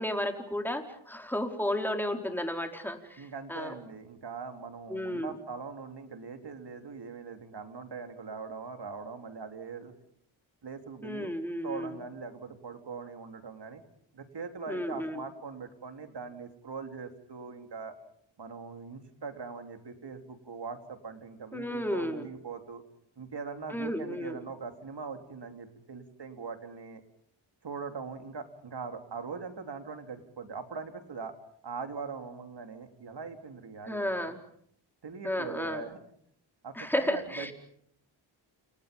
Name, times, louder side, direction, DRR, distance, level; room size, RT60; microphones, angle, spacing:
voice 1, 0.0-3.7 4.9-5.3 11.0-12.0 14.7-15.2 21.5-22.3 23.7-24.4 33.9-34.4 35.2-35.8 36.8-37.5, left 1 dB, 5° left, 4 dB, 4.6 m, -33 dB
voice 2, 3.2-9.9 10.6-11.3 11.6-13.8 14.1-18.0 18.4-22.8 23.2-27.0 27.6-31.4 31.6-34.3 35.0-36.0 36.6-37.5, right 5 dB, 55° right, 6 dB, 3.7 m, -41 dB
29.5 x 29.5 x 5.5 m, 0.66 s
cardioid pair, 85°, 49 cm